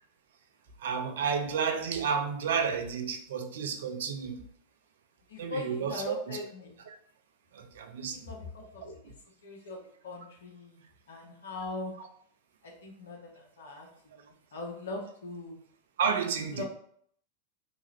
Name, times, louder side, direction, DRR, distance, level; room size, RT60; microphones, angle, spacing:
voice 1, 0.8-4.5 5.4-6.4 6.9-7.0 7.5-8.4 16.0-16.6, right 6 dB, 60° right, 0.4 m, -31 dB
voice 2, 5.3-6.8 8.2-9.1 9.4-11.9 12.6-13.9 14.2-15.6 16.5-16.6, left 2 dB, 60° left, 0.8 m, -41 dB
2.9 x 2.3 x 2.9 m
figure-of-eight pair, 90°, 0 cm